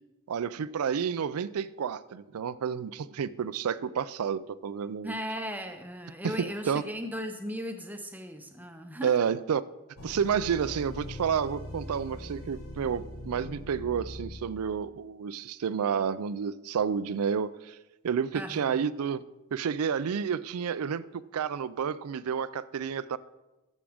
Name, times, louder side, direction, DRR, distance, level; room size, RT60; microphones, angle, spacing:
voice 1, 0.3-5.2 6.2-6.3 6.7-6.8 9.0-9.6 10.0-17.8 18.0-19.2 19.5-23.2, right 7 dB, 90° right, 17 dB, 0.4 m, -30 dB
voice 2, 5.0-9.1 18.3-18.8, equal, 10° right, 6 dB, 0.7 m, -37 dB
sound 1, 10.0-14.9, left 1 dB, 70° left, 1.1 m, -42 dB
13.5 x 7.3 x 3.5 m, 1.1 s
head